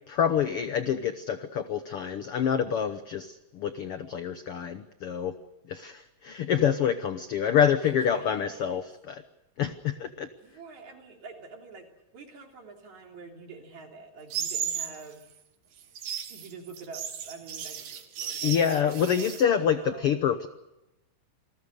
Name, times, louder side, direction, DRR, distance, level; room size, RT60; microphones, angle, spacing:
voice 1, 0.1-5.3 5.7-9.2 9.6-10.3 18.4-20.5, left 8 dB, 75° left, 10 dB, 1.3 m, -27 dB
voice 2, 7.5-8.9 10.4-15.3 16.3-20.1, right 4 dB, 55° right, 2 dB, 4.6 m, -47 dB
sound 1, 14.3-15.0 15.8-19.4, right 8 dB, 90° right, 3.7 m, -34 dB
28.5 x 20.5 x 6.6 m, 0.95 s
omnidirectional pair, 3.9 m